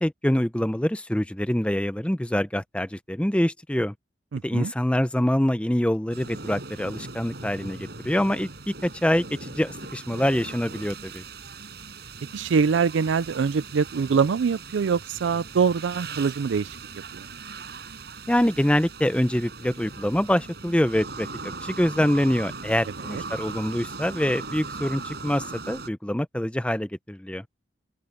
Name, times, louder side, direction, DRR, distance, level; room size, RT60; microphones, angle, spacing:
voice 1, 0.0-3.9 4.4-8.5 8.8-11.2 18.3-27.4, left 1 dB, 5° left, 0.6 m, -25 dB
voice 2, 4.3-4.7 12.3-16.8 17.1-17.3 23.1-23.2, right 5 dB, 80° right, 0.4 m, -24 dB
sound 1, 6.1-25.9, right 4 dB, 60° right, 5.3 m, -39 dB
open air
head